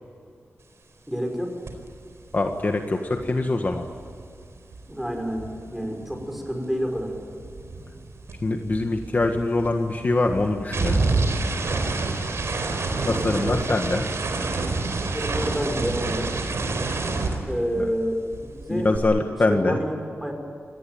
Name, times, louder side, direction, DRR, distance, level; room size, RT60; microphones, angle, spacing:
voice 1, 1.1-1.5 4.9-7.1 13.0-14.0 15.0-16.3 17.5-18.2 18.7-18.9 19.5-20.3, equal, 5° right, 3 dB, 5.7 m, -29 dB
sound 1, 1.7-1.9 2.1-6.5 6.8-18.1 18.3-19.0, right 3 dB, 75° right, 4.3 m, -28 dB
voice 2, 2.3-3.8 8.4-11.0 13.0-14.1 17.7-17.9 18.7-19.8, left 2 dB, 40° left, 4 dB, 1.6 m, -24 dB
27.5 x 19.0 x 9.3 m, 2.5 s
wide cardioid pair, 120°, 5 cm